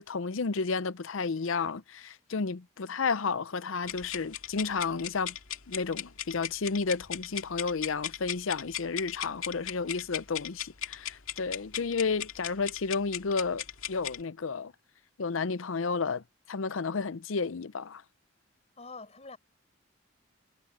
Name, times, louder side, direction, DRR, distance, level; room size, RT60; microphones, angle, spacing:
voice 1, 0.0-5.4 5.7-14.7 15.2-18.0, left 4 dB, 75° left, 0.6 m, -32 dB
sound 1, 3.8-14.2, left 11 dB, 90° left, 2.1 m, -38 dB
voice 2, 18.8-19.4, left 3 dB, 30° left, 5.5 m, -45 dB
head